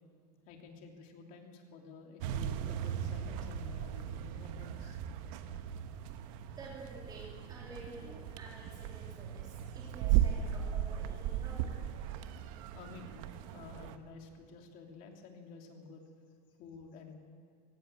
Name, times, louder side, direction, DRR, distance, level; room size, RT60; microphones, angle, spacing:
voice 1, 0.5-5.0 12.6-16.1 16.6-17.1, left 5 dB, 40° left, 2 dB, 3.0 m, -52 dB
sound 1, 2.2-14.0, right 11 dB, 55° right, 1.2 m, -37 dB
voice 2, 6.5-11.8, right 2 dB, 20° right, -4 dB, 3.3 m, -50 dB
18.0 x 16.5 x 9.0 m, 2.3 s
supercardioid pair, 150°, 21 cm